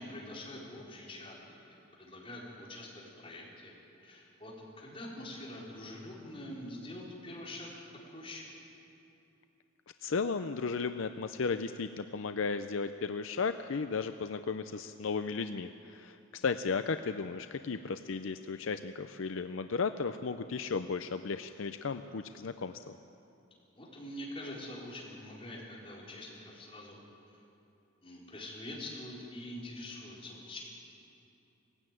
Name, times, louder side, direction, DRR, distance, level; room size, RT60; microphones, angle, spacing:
voice 1, 0.0-3.7 4.0-7.8 8.1-8.5 23.7-27.0 28.0-30.6, left 1 dB, 30° left, -5 dB, 4.6 m, -45 dB
voice 2, 10.0-23.0, left 5 dB, 70° left, 9 dB, 0.5 m, -35 dB
18.5 x 16.0 x 9.2 m, 2.8 s
head